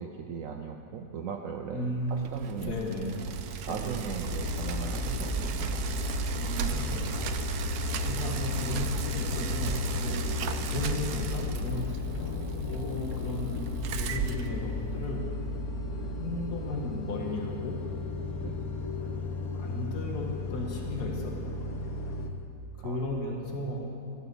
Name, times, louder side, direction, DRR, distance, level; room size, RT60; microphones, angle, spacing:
voice 1, 0.0-1.8 2.1-2.7 3.6-6.0 8.0-8.2 18.4-18.7 22.8-23.1 23.4-23.6, right 6 dB, 65° right, 3 dB, 1.0 m, -38 dB
voice 2, 1.7-2.3 2.6-3.4 3.7-4.0 6.4-7.3 8.0-9.7 10.0-10.2 10.7-11.9 12.2-13.7 13.9-15.2 16.2-17.8 19.1-20.3 20.5-21.7 22.8-23.9, left 2 dB, 85° left, 0 dB, 2.1 m, -35 dB
Bicycle, 2.0-15.2, right 7 dB, 85° right, 1.3 m, -35 dB
sound 1, 4.3-22.3, left 4 dB, 70° left, 1.4 m, -34 dB
15.0 x 8.1 x 6.8 m, 2.9 s
omnidirectional pair, 1.6 m